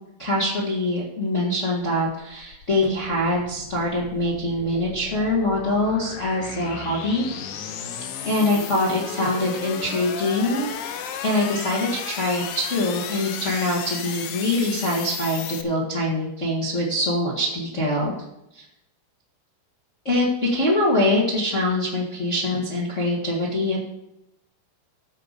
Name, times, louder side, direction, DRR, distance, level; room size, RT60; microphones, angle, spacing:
voice 1, 0.2-7.3 8.2-10.7 11.2-18.1 18.5-18.6 20.0-23.8, left 1 dB, 90° left, -5 dB, 0.6 m, -24 dB
sound 1, 2.2-15.6, left 8 dB, 70° left, 2.4 m, -34 dB
15.0 x 5.2 x 6.6 m, 0.86 s
omnidirectional pair, 4.8 m